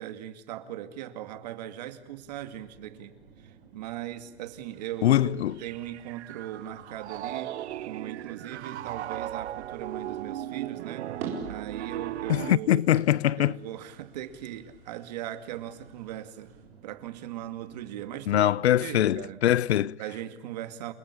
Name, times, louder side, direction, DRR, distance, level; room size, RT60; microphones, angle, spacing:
voice 1, 0.0-3.2 3.4-11.1 11.5-12.8 13.4-16.5 16.8-19.4 20.0-20.9, right 12 dB, 40° right, 2.3 m, -39 dB
sound 1, 1.9-19.5, right 5 dB, 55° right, 7.4 m, -57 dB
sound 2, 4.7-16.7, right 5 dB, 25° right, 4.6 m, -48 dB
voice 2, 5.0-5.6 12.3-13.6 18.3-19.9, left 12 dB, 75° left, 0.9 m, -23 dB
Piano, 5.6-12.6, right 12 dB, 80° right, 0.8 m, -37 dB
29.5 x 17.5 x 9.9 m
supercardioid pair, 180°, 33 cm